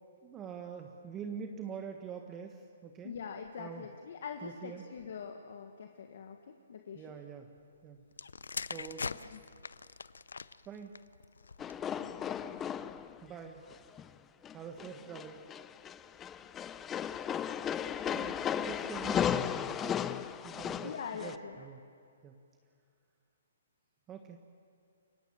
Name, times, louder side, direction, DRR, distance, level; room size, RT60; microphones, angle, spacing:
voice 1, 0.2-3.1 3.6-3.9 4.4-4.8 6.9-7.5 7.8-8.0 8.6-9.1 10.6-10.9 13.2-13.6 14.5-15.5 18.0-20.0 20.4-20.9 21.2-21.8 22.2-22.4 24.1-24.4, right 7 dB, 20° right, 4 dB, 1.4 m, -45 dB
voice 2, 3.0-7.0 9.0-9.4 12.0-12.6 20.8-21.6, left 6 dB, 65° left, 4 dB, 1.6 m, -44 dB
sound 1, 8.1-11.9 12.7-13.0, left 5 dB, 85° left, 0.6 m, -42 dB
sound 2, 11.6-13.2 13.7-14.1 14.4-21.4, left 9 dB, 15° left, 0.6 m, -35 dB
29.0 x 17.0 x 7.4 m, 2.4 s
hypercardioid pair, 140°, 0 cm